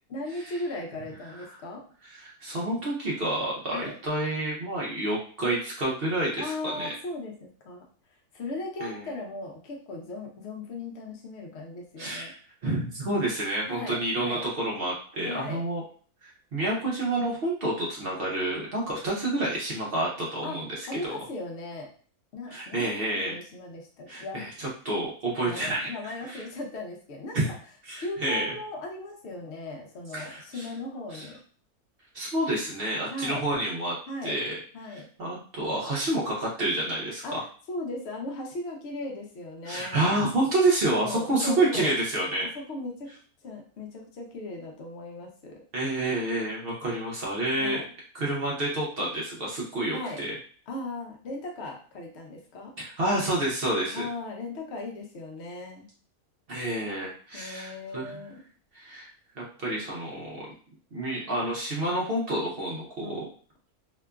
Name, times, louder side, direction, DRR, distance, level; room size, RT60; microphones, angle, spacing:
voice 1, 0.1-1.8 3.7-4.0 6.4-7.9 8.3-12.3 13.7-14.4 15.2-15.6 20.4-20.6 20.9-21.9 22.3-24.5 25.4-27.6 28.0-31.4 33.1-33.5 34.1-34.4 34.7-35.1 37.2-37.4 37.7-40.2 40.9-41.9 42.5-43.1 43.4-45.6 47.6-47.8 49.9-50.2 50.7-52.7 53.9-55.9 57.3-58.4 63.0-63.3, left 2 dB, 55° left, 0 dB, 0.8 m, -37 dB
voice 2, 2.0-6.9 8.8-9.1 12.0-12.4 12.6-15.8 16.2-21.2 22.5-23.4 24.1-25.9 26.3-26.4 27.3-27.5 27.9-28.5 30.1-30.6 31.1-31.2 32.1-34.0 34.2-34.6 34.9-37.4 39.6-42.4 45.7-47.8 48.1-50.4 52.8-54.1 56.5-58.2 58.7-59.1 59.4-60.5 60.9-63.2, right 1 dB, 55° right, -4 dB, 0.7 m, -29 dB
2.9 x 2.4 x 2.2 m, 0.43 s
omnidirectional pair, 1.6 m